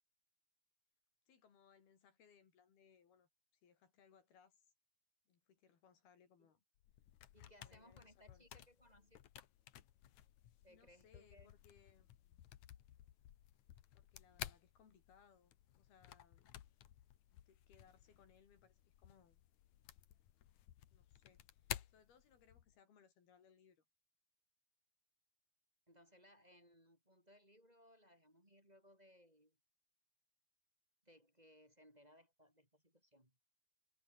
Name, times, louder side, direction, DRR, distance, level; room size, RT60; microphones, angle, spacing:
voice 1, 1.3-4.7 5.3-6.6 7.6-8.5 10.5-12.5 13.9-16.6 17.3-19.4 20.9-23.8, left 7 dB, 80° left, 5.5 m, -70 dB
sound 1, 6.8-22.7, left 12 dB, 60° left, 2.3 m, -55 dB
voice 2, 7.3-9.2 10.6-11.5 25.9-29.6 31.1-33.3, equal, 10° right, 5.7 m, -66 dB
omnidirectional pair, 4.4 m